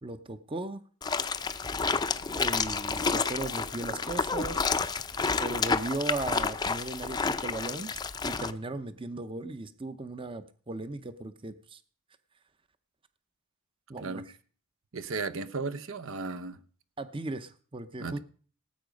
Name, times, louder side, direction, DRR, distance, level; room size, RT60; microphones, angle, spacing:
voice 1, 0.0-0.8 2.3-4.6 5.4-7.9 8.2-11.8 13.9-14.2 17.0-18.2, right 2 dB, 25° right, 12 dB, 0.7 m, -37 dB
sound 1, 1.0-8.5, left 5 dB, 20° left, 0.5 m, -30 dB
voice 2, 14.9-16.6 18.0-18.2, right 4 dB, 70° right, 11 dB, 0.8 m, -35 dB
18.0 x 8.3 x 5.2 m, 0.43 s
head